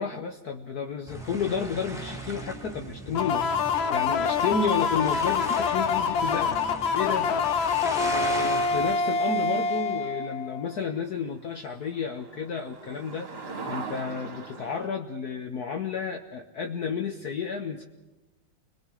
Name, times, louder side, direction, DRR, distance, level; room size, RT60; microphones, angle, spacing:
voice 1, 0.0-3.5 3.9-7.3 8.0-17.8, left 6 dB, 60° left, 4 dB, 1.5 m, -31 dB
sound 1, 1.1-9.0, right 1 dB, ahead, 1.9 m, -38 dB
sound 2, 3.1-10.7, left 5 dB, 80° left, 1.8 m, -26 dB
sound 3, 5.8-6.7 10.2-10.3 10.8-10.9 11.1-14.9, right 4 dB, 35° right, 1.5 m, -41 dB
29.5 x 21.5 x 4.8 m, 1.0 s
omnidirectional pair, 2.1 m